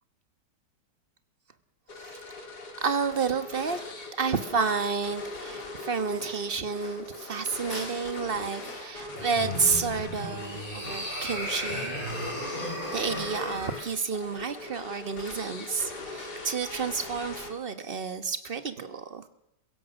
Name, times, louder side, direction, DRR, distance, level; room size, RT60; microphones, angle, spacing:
sound 1, 1.9-17.8, left 3 dB, 65° left, 3.3 m, -41 dB
voice 1, 2.8-3.8 4.2-11.9 12.9-19.2, right 5 dB, 35° right, 10 dB, 1.3 m, -30 dB
sound 2, 3.7-9.8, equal, 50° left, 8.4 m, -46 dB
sound 3, 9.0-13.8, equal, 30° left, 6.8 m, -35 dB
28.0 x 16.5 x 6.4 m, 0.86 s
omnidirectional pair, 1.9 m